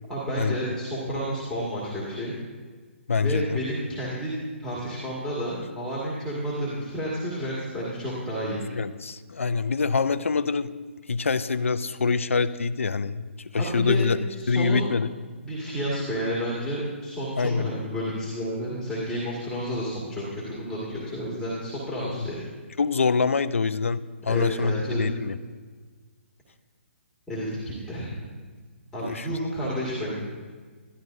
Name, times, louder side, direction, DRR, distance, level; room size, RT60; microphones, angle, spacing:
voice 1, 0.1-2.3 3.2-4.3 4.6-8.6 13.6-14.0 14.4-14.8 15.4-22.4 24.3-25.2 27.3-28.2 28.9-30.3, equal, 5° left, -7 dB, 2.0 m, -31 dB
voice 2, 3.1-3.6 8.7-10.7 11.1-13.3 13.5-14.2 14.5-15.1 17.4-17.7 22.0-22.3 22.8-25.4 29.0-29.3, left 4 dB, 80° left, 13 dB, 0.5 m, -25 dB
12.5 x 12.5 x 2.7 m, 1.5 s
figure-of-eight pair, 140°, 7 cm